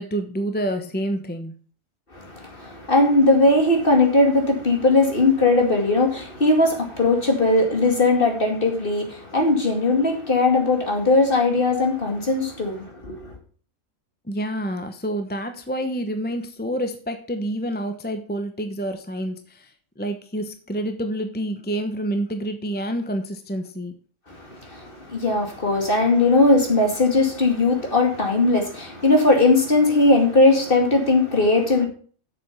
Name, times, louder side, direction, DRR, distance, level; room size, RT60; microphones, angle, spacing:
voice 1, 0.0-1.5 14.3-23.9, right 1 dB, 10° left, 0.8 m, -28 dB
voice 2, 2.1-13.3 24.3-31.9, left 2 dB, 40° left, 2.6 m, -19 dB
8.1 x 7.0 x 6.9 m
omnidirectional pair, 1.4 m